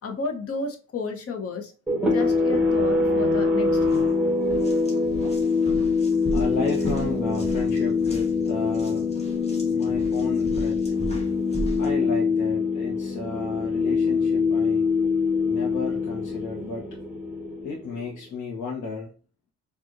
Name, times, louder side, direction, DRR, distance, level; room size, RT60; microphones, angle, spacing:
voice 1, 0.0-1.7 2.1-4.1, left 4 dB, 50° left, 1.1 m, -32 dB
sound 1, 1.9-18.2, left 4 dB, 5° right, 1.4 m, -24 dB
sound 2, 3.8-4.0 4.4-11.9, right 1 dB, 20° left, 1.5 m, -36 dB
voice 2, 6.3-9.1 9.7-10.8 11.8-14.8 15.5-17.0 17.6-19.1, left 4 dB, 80° left, 1.2 m, -33 dB
5.1 x 2.7 x 2.6 m
cardioid pair, 90°, 30 cm